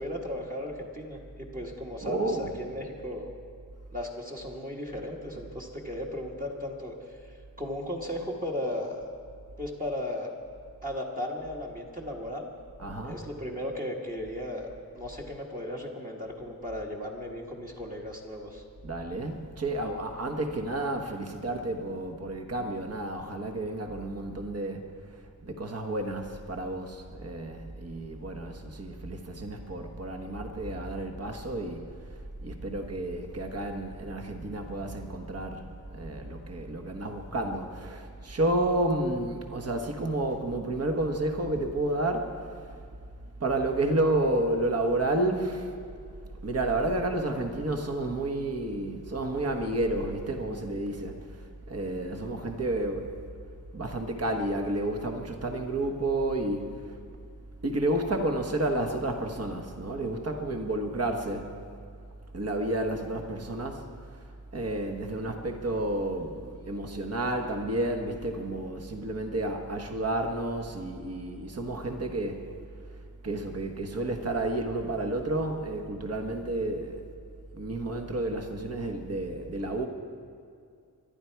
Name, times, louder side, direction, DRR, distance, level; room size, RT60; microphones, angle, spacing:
voice 1, 0.0-3.3 3.9-7.2 7.6-9.0 9.6-10.3 10.8-12.5 13.0-14.7 14.9-18.6, left 1 dB, 25° right, 0 dB, 1.5 m, -36 dB
voice 2, 2.0-2.5 12.8-13.3 18.8-32.0 32.4-35.6 35.9-42.8 43.4-45.7 46.4-53.1 53.7-57.0 57.6-61.5 62.3-63.8 64.1-64.3 64.5-72.4 73.2-77.0 77.5-79.9, right 1 dB, 40° right, 4 dB, 1.4 m, -31 dB
25.0 x 11.5 x 4.7 m, 2.3 s
wide cardioid pair, 145°, 36 cm